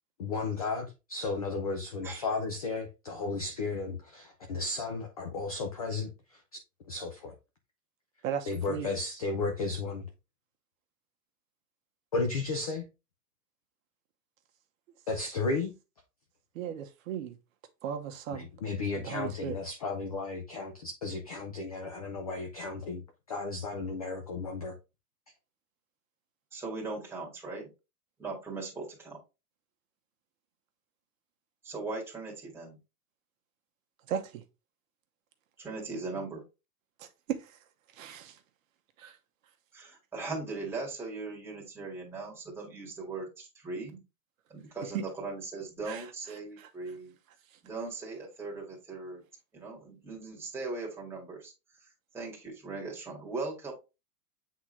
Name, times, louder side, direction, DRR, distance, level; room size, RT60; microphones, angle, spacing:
voice 1, 0.2-6.1 6.9-7.3 8.5-10.0 12.1-12.8 15.1-15.7 18.3-23.0 23.3-24.7, left 3 dB, 25° left, 0.4 m, -34 dB
voice 2, 2.0-2.4 26.5-27.7 28.2-29.2 31.6-32.8 35.6-36.4 39.7-44.0 44.5-47.1 47.6-49.2 49.5-51.5 52.1-53.7, right 3 dB, 5° right, 2.0 m, -39 dB
voice 3, 8.2-8.9 16.5-17.4 17.8-18.5 18.9-19.6 34.1-34.4 37.0-37.6 37.9-38.4 39.0-39.2 44.9-45.0 45.9-46.1 46.6-46.9, right 8 dB, 55° right, 1.1 m, -36 dB
8.1 x 3.8 x 3.2 m
supercardioid pair, 160°, 48 cm